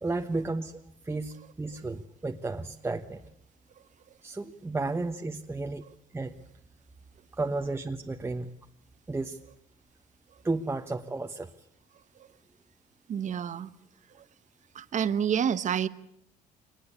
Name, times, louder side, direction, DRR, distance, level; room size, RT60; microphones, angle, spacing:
voice 1, 0.0-3.2 4.2-5.8 6.1-6.3 7.3-8.5 9.1-9.4 10.4-11.5, right 3 dB, 15° right, 4 dB, 1.1 m, -33 dB
voice 2, 13.1-13.7 14.1-14.2 14.7-15.9, right 8 dB, 45° right, 14 dB, 1.1 m, -28 dB
23.5 x 19.5 x 8.3 m, 0.73 s
cardioid pair, 110°, 17 cm